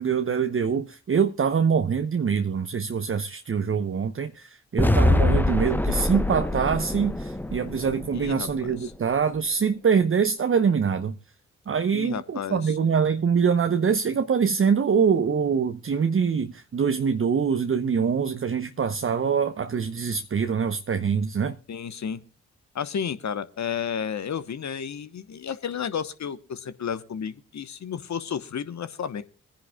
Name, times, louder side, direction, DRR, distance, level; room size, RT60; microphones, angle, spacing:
voice 1, 0.0-11.2 11.7-21.6, right 6 dB, 35° right, 0.9 m, -24 dB
sound 1, 4.8-8.9, left 2 dB, 5° left, 0.9 m, -24 dB
voice 2, 8.1-8.9 11.9-12.6 21.7-22.2 22.7-29.2, left 7 dB, 50° left, 1.1 m, -32 dB
23.5 x 10.0 x 2.3 m
hypercardioid pair, 40°, 35 cm